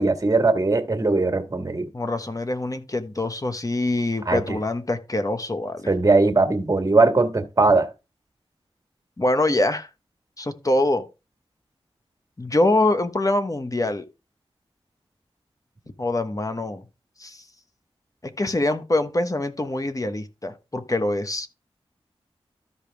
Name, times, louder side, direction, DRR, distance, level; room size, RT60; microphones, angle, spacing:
voice 1, 0.0-1.9 4.3-4.6 5.9-7.9, right 3 dB, 35° right, 1.7 m, -20 dB
voice 2, 1.9-5.9 9.2-9.9 10.4-11.0 12.4-14.0 16.0-16.8 17.2-17.4 18.2-21.5, left 2 dB, 35° left, 1.3 m, -24 dB
13.0 x 5.2 x 3.5 m
cardioid pair, 50°, 10 cm